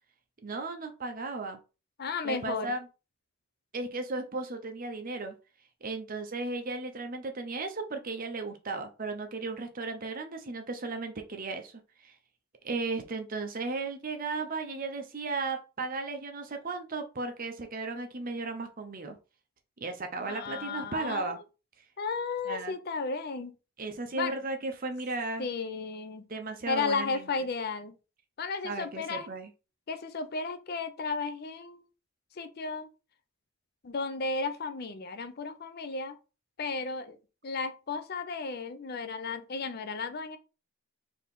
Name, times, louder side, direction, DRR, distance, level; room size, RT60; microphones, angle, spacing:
voice 1, 0.4-1.6 2.2-2.8 3.7-5.3 5.8-11.7 12.0-12.1 12.6-19.2 19.8-21.4 22.5-22.7 23.8-25.5 26.3-27.3 28.6-29.5, right 3 dB, 40° right, 0.7 m, -35 dB
voice 2, 2.0-2.7 20.3-21.4 22.0-23.5 24.1-24.4 25.4-26.2 26.7-27.9 28.4-29.3 29.9-31.8 32.4-32.9 33.8-36.2 36.6-37.2 37.4-40.4, left 4 dB, 45° left, 0.5 m, -34 dB
4.2 x 2.8 x 3.6 m
head